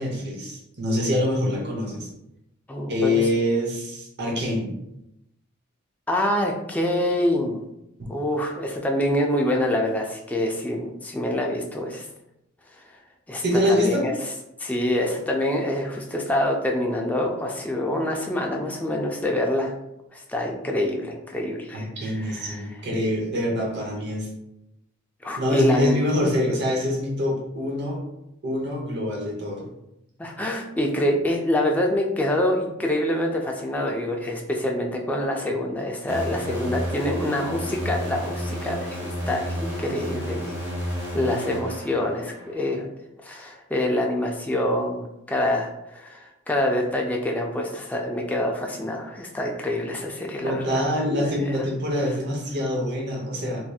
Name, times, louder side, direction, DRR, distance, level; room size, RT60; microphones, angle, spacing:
voice 1, 0.0-2.1 2.9-4.7 8.0-8.1 13.4-14.1 21.7-24.3 25.4-28.0 28.4-29.7 50.4-53.6, left 1 dB, 55° right, -1 dB, 0.8 m, -25 dB
voice 2, 2.7-3.3 6.1-7.6 8.1-12.1 12.7-12.8 13.3-13.4 13.7-14.1 14.6-19.7 20.1-22.7 25.2-26.0 30.2-40.6 41.1-42.9 43.2-50.8 51.2-51.4, left 1 dB, 10° left, 0 dB, 0.3 m, -26 dB
sound 1, 36.1-42.6, equal, 10° right, 0.8 m, -31 dB
3.2 x 2.8 x 2.3 m, 0.83 s
head